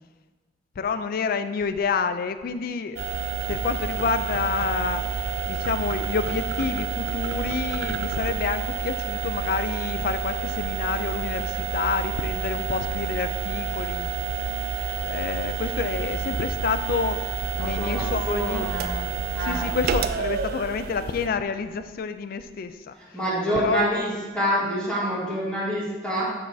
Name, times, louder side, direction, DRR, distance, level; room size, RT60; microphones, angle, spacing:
voice 1, 0.8-3.0 3.5-5.0 5.5-14.1 15.0-17.2 17.6-18.7 19.5-22.9 23.6-24.0, left 5 dB, 55° left, 10 dB, 0.3 m, -28 dB
sound 1, 3.0-21.3, right 7 dB, 60° right, 0.3 m, -29 dB
voice 2, 17.5-19.0 19.3-19.7 22.9-26.3, equal, 5° left, -9 dB, 1.6 m, -27 dB
6.7 x 6.2 x 2.7 m, 1.3 s
head